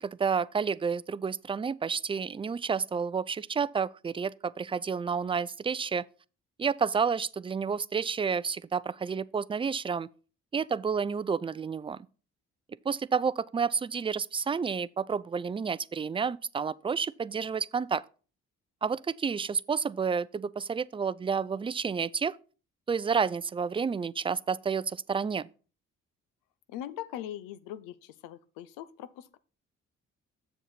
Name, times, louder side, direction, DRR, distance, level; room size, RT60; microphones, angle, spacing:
voice 1, 0.0-6.0 6.6-10.1 10.5-12.1 12.9-18.0 18.8-22.4 22.9-25.5, right 6 dB, 15° right, 0.3 m, -30 dB
voice 2, 26.7-29.4, left 11 dB, 85° left, 0.6 m, -41 dB
7.4 x 6.5 x 4.1 m
supercardioid pair, 50°, 32 cm